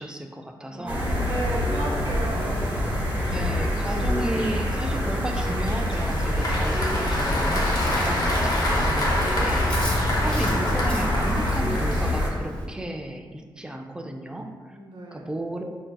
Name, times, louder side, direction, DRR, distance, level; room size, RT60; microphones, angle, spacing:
voice 1, 0.0-1.1 1.7-2.2 3.3-10.0 10.2-14.8 15.1-15.7, right 1 dB, 10° right, 3 dB, 0.3 m, -33 dB
voice 2, 0.7-2.7 14.6-15.3, right 2 dB, 70° right, -1 dB, 0.7 m, -34 dB
sound 1, 0.9-12.3, left 1 dB, 25° right, 1.1 m, -26 dB
Applause, 5.3-12.4, left 1 dB, 55° left, 0.7 m, -28 dB
Chewing mastication, 6.9-12.7, left 1 dB, 15° left, 0.7 m, -33 dB
5.6 x 2.5 x 2.2 m, 1.5 s
wide cardioid pair, 105°, 8 cm